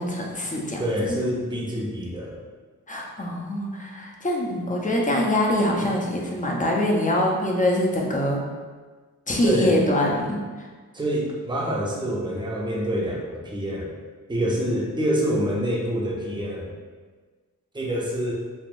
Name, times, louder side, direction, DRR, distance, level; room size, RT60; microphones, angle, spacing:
voice 1, 0.0-0.8 2.9-8.4 9.3-10.7, left 1 dB, 20° left, -2 dB, 0.7 m, -24 dB
voice 2, 0.8-2.4 9.4-9.8 10.9-13.9 14.3-16.7 17.7-18.3, equal, 10° right, -3 dB, 0.7 m, -26 dB
3.4 x 2.5 x 2.5 m, 1.4 s
cardioid pair, 50°, 36 cm